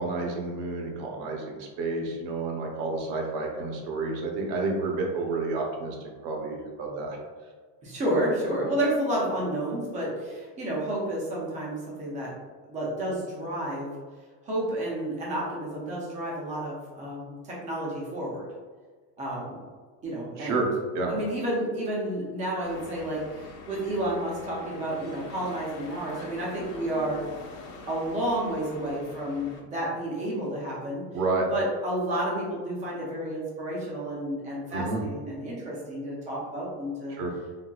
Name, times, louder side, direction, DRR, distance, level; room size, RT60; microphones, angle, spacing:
voice 1, 0.0-7.2 20.4-20.7 20.9-21.1 31.1-31.5 34.7-35.0 37.1-37.3, right 3 dB, 50° right, 0 dB, 0.7 m, -30 dB
voice 2, 7.8-12.3 12.7-13.9 14.4-18.5 19.2-19.6 20.0-20.7 21.1-27.2 27.9-31.0 31.5-37.2, right 1 dB, 15° right, -4 dB, 0.4 m, -30 dB
sound 1, 22.6-29.6, left 3 dB, 80° left, 0.9 m, -45 dB
4.0 x 2.6 x 2.2 m, 1.5 s
cardioid pair, 175°, 48 cm